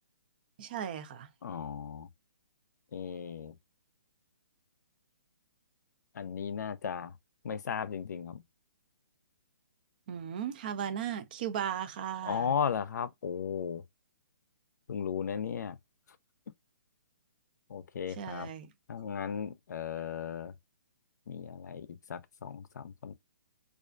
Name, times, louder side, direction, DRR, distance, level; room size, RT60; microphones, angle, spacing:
voice 1, 0.6-1.3 10.1-12.5 18.2-18.7, right 9 dB, 30° right, 0.4 m, -36 dB
voice 2, 1.4-2.1 2.9-3.5 6.2-7.1 7.4-8.4 12.3-13.8 14.9-15.8 17.7-18.5 18.9-20.5 21.3-23.1, left 7 dB, 75° left, 0.5 m, -36 dB
2.4 x 2.2 x 2.5 m
hypercardioid pair, 165°, 10 cm